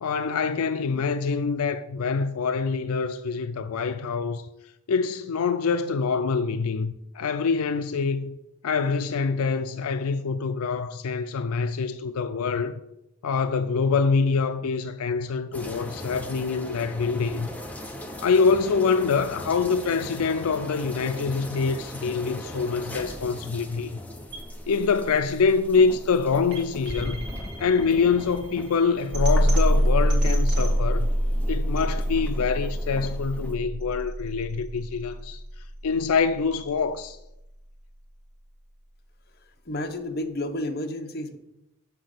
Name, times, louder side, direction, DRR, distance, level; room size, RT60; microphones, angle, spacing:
voice 1, 0.0-4.5 4.9-8.4 8.6-12.8 13.2-17.5 18.2-24.0 24.7-27.3 27.6-31.1 31.5-35.4 35.8-37.2, left 5 dB, 80° left, 0.4 m, -25 dB
sound 1, 15.5-33.6, left 1 dB, 5° left, 0.7 m, -40 dB
sound 2, 24.3-36.3, equal, 50° right, 2.4 m, -26 dB
voice 2, 39.7-41.4, left 1 dB, 45° left, 0.8 m, -31 dB
7.2 x 5.9 x 6.6 m
head